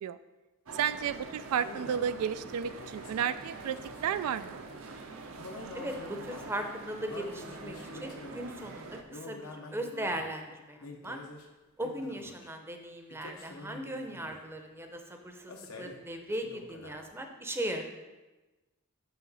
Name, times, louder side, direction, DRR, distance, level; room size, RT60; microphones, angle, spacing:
sound 1, 0.7-9.0, right 3 dB, 70° right, 0.7 m, -45 dB
voice 1, 0.8-4.6, right 8 dB, 85° right, 16 dB, 0.3 m, -32 dB
sound 2, 1.5-2.1 2.6-4.2 5.4-6.6 7.0-8.6 9.1-10.3 10.8-11.5 11.8-12.5 13.1-14.5 15.5-16.0 16.3-17.0, left 2 dB, 70° left, 0.9 m, -47 dB
voice 2, 5.7-11.2 11.8-17.8, right 1 dB, 10° right, 5 dB, 0.6 m, -38 dB
7.1 x 5.7 x 4.0 m, 1.1 s
head